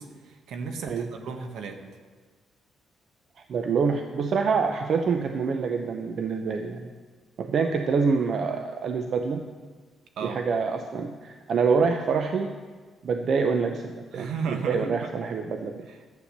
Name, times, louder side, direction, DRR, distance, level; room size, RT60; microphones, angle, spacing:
voice 1, 0.0-1.8 10.2-10.4 14.1-15.1 15.9-16.0, right 5 dB, 75° right, 5 dB, 1.4 m, -34 dB
voice 2, 3.5-6.9 7.4-9.5 10.2-12.5 13.0-15.9, right 5 dB, 60° right, 5 dB, 0.7 m, -26 dB
11.5 x 8.4 x 6.7 m, 1.5 s
cardioid pair, 90°, 0 cm